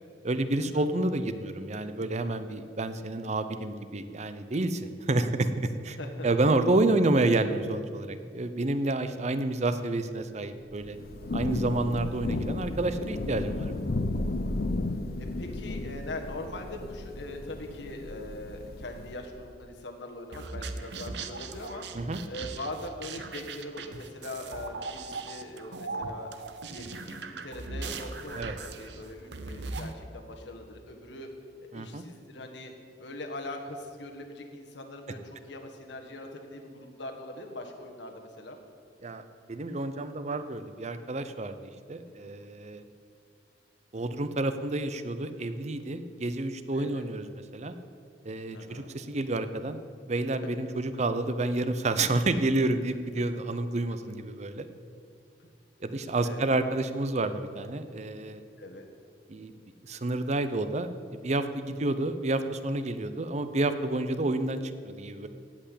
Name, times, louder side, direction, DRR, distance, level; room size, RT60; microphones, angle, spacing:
voice 1, 0.2-6.0 6.2-11.0 11.3-13.8 21.9-22.2 28.4-28.6 31.7-32.0 39.0-41.6 41.9-42.8 43.9-47.3 47.5-47.7 48.2-49.8 50.1-54.7 55.8-58.4 59.3-59.5 59.8-65.3, right 2 dB, 40° right, 10 dB, 0.7 m, -29 dB
Thunder / Rain, 10.7-19.3, left 2 dB, 60° left, 0.7 m, -34 dB
voice 2, 15.2-26.3 26.7-31.3 31.6-32.7 33.0-38.6 42.0-42.4 46.7-47.0 48.5-48.9 55.4-55.5 56.2-56.4 58.6-58.9, left 1 dB, 85° left, 3 dB, 1.7 m, -41 dB
sound 1, 20.3-29.9, right 3 dB, 70° right, 0.8 m, -39 dB
17.0 x 5.8 x 8.5 m, 2.3 s
head